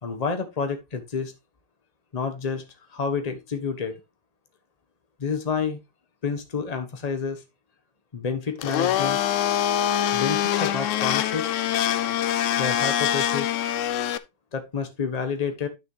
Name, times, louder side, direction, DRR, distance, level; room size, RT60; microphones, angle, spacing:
voice 1, 0.0-1.3 2.1-2.6 2.9-4.0 5.2-5.8 6.2-7.4 8.1-9.2 10.1-11.5 12.6-13.5 14.5-15.7, left 5 dB, 25° left, 6 dB, 1.2 m, -29 dB
Domestic sounds home sounds, 8.6-14.2, left 10 dB, 70° left, 0.7 m, -24 dB
10.5 x 6.3 x 3.3 m, 0.24 s
omnidirectional pair, 1.9 m